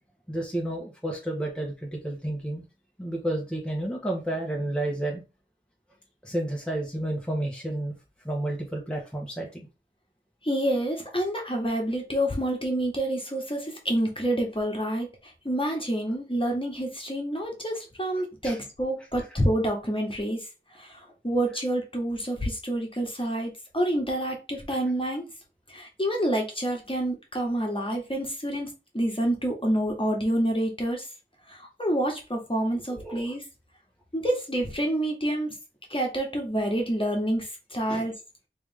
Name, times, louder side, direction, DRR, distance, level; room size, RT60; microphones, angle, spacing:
voice 1, 0.3-2.6 3.0-5.2 6.2-7.9 8.2-9.7 18.4-18.6 32.9-33.3 37.9-38.1, right 1 dB, 5° left, 1.0 m, -31 dB
voice 2, 10.4-20.5 20.7-25.2 25.7-28.7 28.9-31.0 31.5-33.4 34.1-35.5 35.9-38.1, right 1 dB, 25° left, 1.4 m, -28 dB
3.4 x 3.2 x 3.5 m
wide cardioid pair, 45°, 20 cm